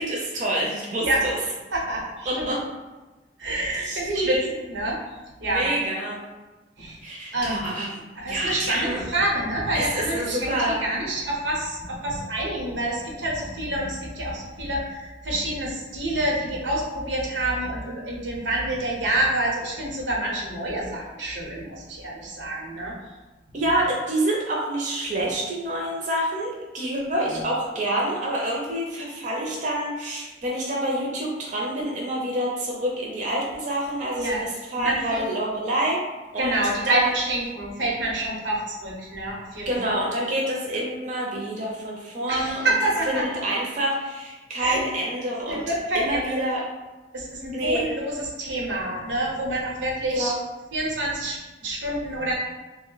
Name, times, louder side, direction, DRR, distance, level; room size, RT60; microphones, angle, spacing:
voice 1, 0.0-1.4 2.3-2.6 3.8-4.5 5.4-6.2 7.0-8.0 8.3-9.0 9.7-10.8 23.5-36.0 36.3-36.6 36.8-37.1 39.7-42.8 43.1-45.6 45.9-46.6 47.5-47.9 50.1-50.3, right 1 dB, 45° right, -3 dB, 0.5 m, -27 dB
voice 2, 1.7-2.5 3.4-4.4 4.7-4.9 5.4-5.6 6.8-7.0 7.3-7.7 8.2-22.9 27.3-27.4 34.2-34.4 34.8-35.2 36.4-40.0 42.3-43.4 44.6-44.8 45.5-46.3 47.1-50.3 50.7-52.3, right 1 dB, 90° right, -3 dB, 0.9 m, -27 dB
3.0 x 2.1 x 3.8 m, 1.2 s
head